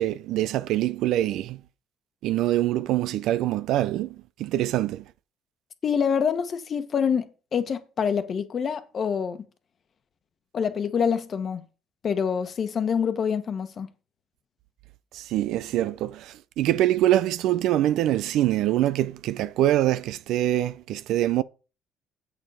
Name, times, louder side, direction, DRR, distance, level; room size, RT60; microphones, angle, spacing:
voice 1, 0.0-1.6 2.2-5.0 15.1-21.4, right 13 dB, 70° right, 0.5 m, -24 dB
voice 2, 5.8-7.3 7.5-9.5 10.5-11.6 12.0-13.9, left 7 dB, 40° left, 1.2 m, -26 dB
8.0 x 6.9 x 5.5 m
cardioid pair, 110°, 0 cm